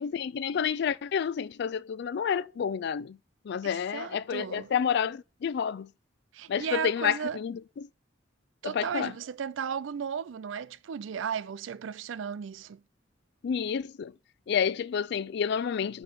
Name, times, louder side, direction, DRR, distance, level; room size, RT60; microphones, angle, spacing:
voice 1, 0.0-3.2 3.4-5.9 6.5-7.9 8.6-9.1 13.4-14.1 14.5-16.0, left 7 dB, 60° left, 0.3 m, -29 dB
voice 2, 3.6-4.7 6.3-7.4 8.6-12.8, right 7 dB, 75° right, 0.4 m, -35 dB
9.2 x 3.2 x 6.0 m
head